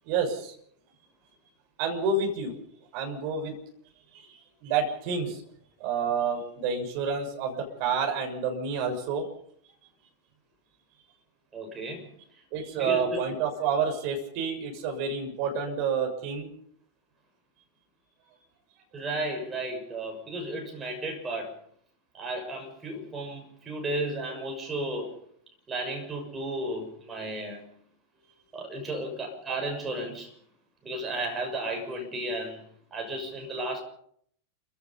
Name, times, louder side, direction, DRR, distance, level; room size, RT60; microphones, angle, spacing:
voice 1, 0.0-0.5 1.8-2.6 2.9-3.5 4.1-5.4 5.8-9.2 12.5-16.5, right 5 dB, 45° right, 3 dB, 6.5 m, -29 dB
voice 2, 11.5-12.1 12.8-13.2 18.9-21.5 22.1-25.1 25.7-27.6 28.5-30.3 30.8-32.6 32.9-33.8, right 1 dB, 15° right, 2 dB, 6.5 m, -33 dB
28.5 x 16.5 x 5.6 m, 0.66 s
figure-of-eight pair, 90°, 0 cm